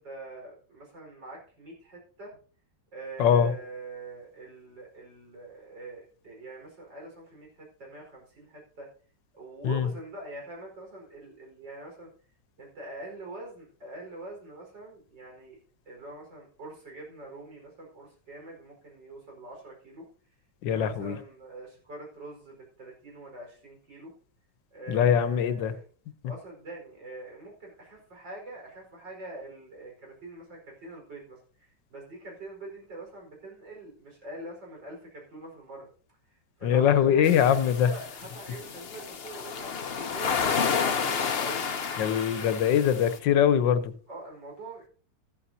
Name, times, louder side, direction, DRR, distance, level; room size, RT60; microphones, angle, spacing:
voice 1, 0.0-2.4 2.9-8.9 9.3-12.1 12.6-15.6 15.9-20.0 20.7-24.1 24.7-25.8 26.2-35.9 36.3-41.0 41.4-41.7 42.3-42.7 44.1-44.9, right 2 dB, 90° right, 5.5 m, -44 dB
voice 2, 3.2-3.5 9.6-9.9 20.6-21.2 24.9-25.7 36.6-37.9 42.0-43.9, left 8 dB, 90° left, 1.6 m, -22 dB
sound 1, 37.2-43.2, left 6 dB, 45° left, 1.0 m, -31 dB
13.0 x 12.5 x 2.8 m
omnidirectional pair, 1.9 m